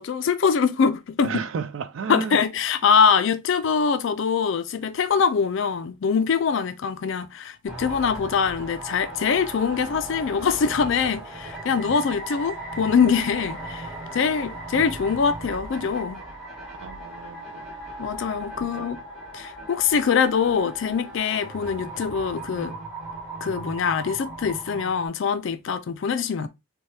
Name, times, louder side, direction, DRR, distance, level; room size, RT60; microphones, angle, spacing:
voice 1, 0.0-1.3 2.1-16.2 18.0-19.0 19.3-22.7 23.4-26.5, left 6 dB, 60° left, 0.3 m, -23 dB
voice 2, 1.2-2.4 16.7-17.7 18.8-18.9, right 5 dB, 60° right, 0.3 m, -33 dB
sound 1, 7.7-25.1, right 2 dB, ahead, 1.3 m, -37 dB
3.2 x 2.2 x 2.7 m
head